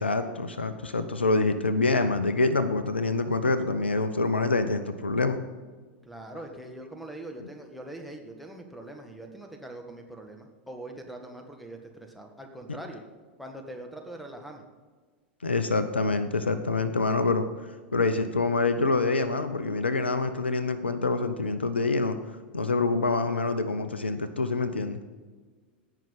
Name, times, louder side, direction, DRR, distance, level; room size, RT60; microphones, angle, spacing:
voice 1, 0.0-5.4 15.4-17.5 17.9-22.2 22.5-25.0, left 3 dB, 80° left, 11 dB, 0.7 m, -26 dB
voice 2, 6.0-13.0 13.4-14.7, right 1 dB, ahead, 1 dB, 1.8 m, -42 dB
16.5 x 5.9 x 5.6 m, 1.4 s
figure-of-eight pair, 90°, 6 cm